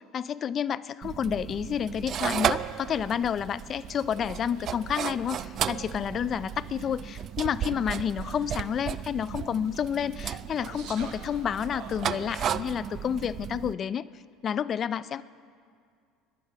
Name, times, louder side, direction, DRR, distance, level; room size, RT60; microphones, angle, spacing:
voice 1, 0.1-14.1 14.4-15.2, left 8 dB, 35° left, 16 dB, 0.4 m, -30 dB
sound 1, 1.0-13.7, right 9 dB, 40° right, 0.4 m, -34 dB
sound 2, 2.3-12.4, right 5 dB, 80° right, 2.2 m, -51 dB
25.0 x 11.5 x 4.8 m, 2.2 s
cardioid pair, 130°, 0 cm